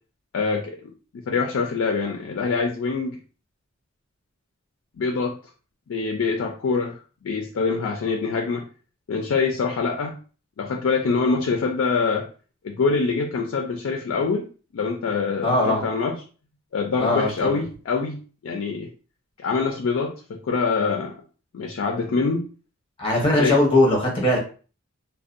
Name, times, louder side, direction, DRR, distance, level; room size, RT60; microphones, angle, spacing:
voice 1, 0.3-3.2 5.0-5.4 5.9-8.6 9.1-10.2 10.6-12.3 12.6-14.5 14.7-16.2 16.7-18.9 19.4-21.1 21.5-22.4 23.4-23.6, left 4 dB, 65° left, 2 dB, 0.4 m, -25 dB
voice 2, 15.4-15.8 17.0-17.6 23.0-24.4, left 1 dB, 25° left, -2 dB, 0.9 m, -20 dB
2.5 x 2.1 x 2.5 m, 0.37 s
head